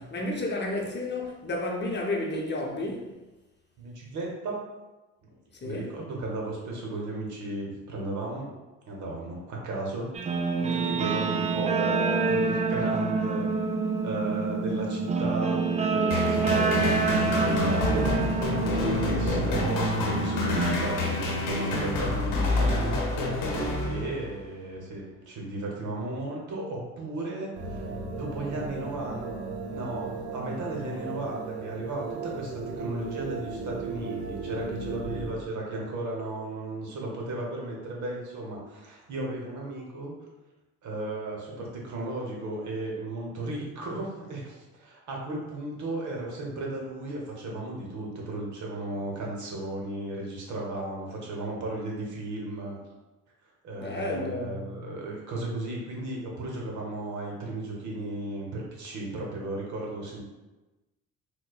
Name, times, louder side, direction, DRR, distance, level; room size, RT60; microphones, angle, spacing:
voice 1, 0.0-3.2 5.5-6.0 53.8-54.7, left 2 dB, 35° left, 0.7 m, -32 dB
voice 2, 3.8-4.7 5.2-5.3 5.6-8.5 8.9-10.1 10.6-13.4 14.0-18.3 19.0-23.0 23.8-29.3 29.7-40.1 40.8-52.8 53.6-60.2, right 2 dB, 60° right, 1.0 m, -35 dB
Guitar, 10.1-20.8, right 4 dB, 20° right, 0.3 m, -27 dB
sound 1, 16.1-24.4, left 2 dB, 75° left, 0.8 m, -28 dB
sound 2, 27.5-35.3, right 4 dB, 85° right, 0.7 m, -36 dB
4.2 x 2.2 x 2.4 m
supercardioid pair, 65°, 33 cm